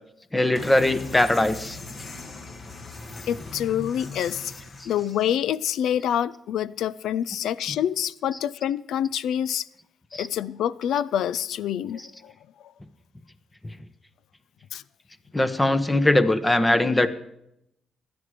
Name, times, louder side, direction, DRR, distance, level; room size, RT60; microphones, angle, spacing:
voice 1, 0.3-1.8 10.1-10.3 15.3-17.1, left 1 dB, 15° left, 1.0 m, -21 dB
sound 1, 0.5-5.4, left 3 dB, 45° left, 2.1 m, -39 dB
voice 2, 3.3-4.5 4.8-9.7 10.2-12.3 14.7-14.8, left 10 dB, 80° left, 0.5 m, -26 dB
16.0 x 11.0 x 4.9 m
cardioid pair, 90°, 0 cm